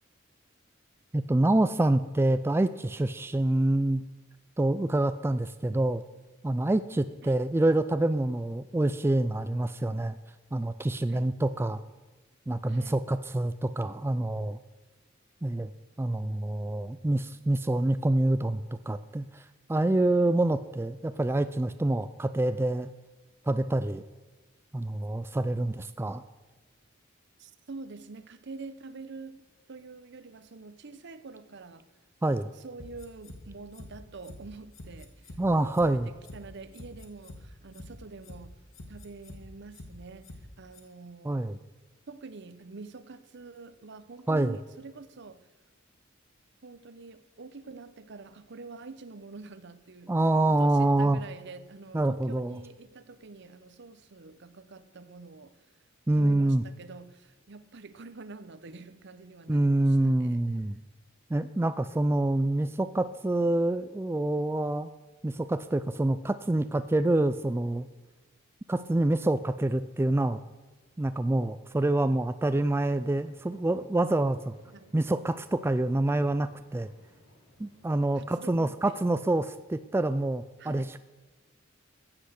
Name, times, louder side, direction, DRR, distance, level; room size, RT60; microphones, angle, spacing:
voice 1, 1.1-4.0 4.6-6.0 6.4-10.2 10.5-11.8 12.5-14.6 15.4-15.7 16.0-22.9 23.4-24.0 24.7-26.2 32.2-32.5 35.4-36.1 41.2-41.6 44.3-44.6 50.1-51.2 51.9-52.6 56.1-56.6 59.5-60.8 61.3-64.9 65.2-67.9 68.7-70.4 71.0-74.5 74.9-76.9 77.6-81.0, right 1 dB, 10° right, 12 dB, 0.3 m, -26 dB
voice 2, 12.7-13.0 27.4-31.8 32.5-38.5 38.9-41.5 42.1-45.5 46.6-50.2 50.5-55.7 56.2-60.5 74.7-74.9 78.1-79.0 80.6-81.0, right 3 dB, 60° right, 13 dB, 0.8 m, -46 dB
sound 1, 32.8-33.4 33.7-33.9 34.2-34.4 34.7-35.4 35.7-35.9 36.2-36.4 36.7-37.4 37.7-37.9 38.2-38.4 38.7-39.4 39.7-39.9 40.2-40.4 40.7-40.8, left 2 dB, 80° left, 1.7 m, -45 dB
sound 2, 72.7-78.4, equal, 65° left, 4.0 m, -60 dB
14.5 x 8.0 x 6.5 m, 1.3 s
head